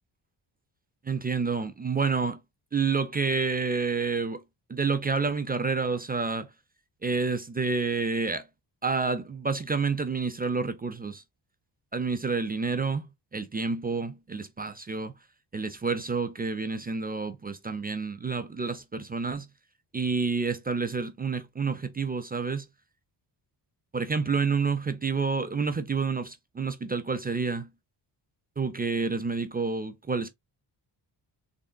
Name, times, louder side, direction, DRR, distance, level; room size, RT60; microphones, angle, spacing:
voice 1, 1.0-2.4 2.7-4.4 4.7-6.5 7.0-8.5 8.8-11.2 11.9-15.1 15.5-19.5 19.9-22.7 23.9-27.7 28.6-30.3, right 4 dB, 25° right, 0.3 m, -29 dB
3.8 x 3.5 x 2.2 m
wide cardioid pair, 135°, 45 cm